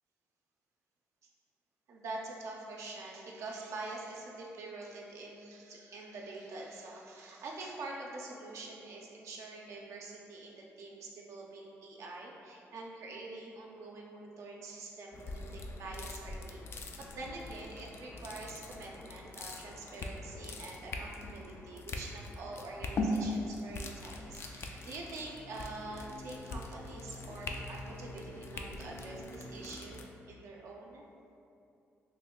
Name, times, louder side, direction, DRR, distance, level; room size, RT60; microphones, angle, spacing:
voice 1, 1.9-31.1, right 2 dB, 75° right, -2 dB, 0.4 m, -45 dB
sound 1, 15.1-30.0, left 2 dB, 50° left, 0.3 m, -41 dB
3.1 x 2.2 x 3.6 m, 2.6 s
cardioid pair, 75°, 5 cm